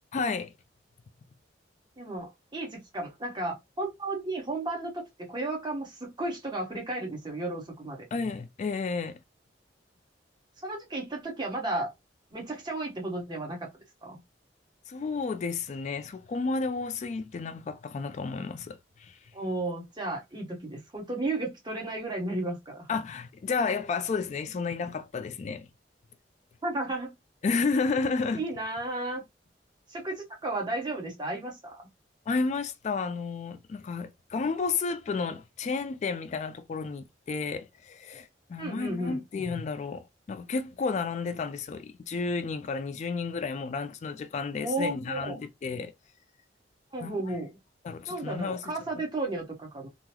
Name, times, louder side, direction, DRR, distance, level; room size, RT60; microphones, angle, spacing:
voice 1, 0.1-0.5 8.1-9.2 14.9-19.2 22.9-25.7 27.4-28.4 32.3-45.9 47.0-47.1 47.8-48.6, left 4 dB, 40° left, 0.3 m, -32 dB
voice 2, 2.0-8.0 10.6-11.9 12.3-13.7 14.0-14.2 19.3-22.9 26.6-27.1 28.3-29.2 29.9-31.8 38.6-39.2 44.6-45.4 46.9-47.5 48.1-49.9, right 2 dB, 25° right, 1.1 m, -33 dB
3.7 x 2.0 x 2.9 m
head